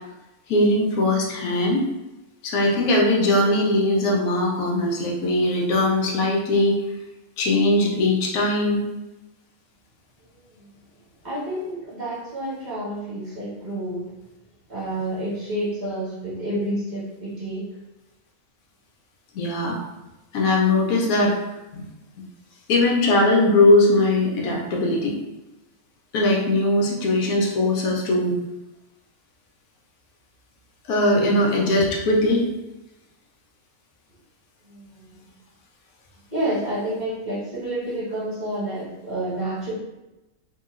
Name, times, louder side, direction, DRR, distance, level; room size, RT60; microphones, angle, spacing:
voice 1, 0.5-1.8 2.4-6.8 7.4-8.9 19.3-19.8 20.3-21.4 21.7-21.8 22.7-25.2 26.1-28.4 30.9-32.4, left 2 dB, 80° left, -1 dB, 1.1 m, -20 dB
voice 2, 10.3-10.7 11.2-14.1 14.7-17.6 34.6-35.3 36.3-39.7, right 1 dB, 30° right, -11 dB, 1.6 m, -29 dB
3.0 x 2.8 x 2.4 m, 0.99 s
omnidirectional pair, 1.5 m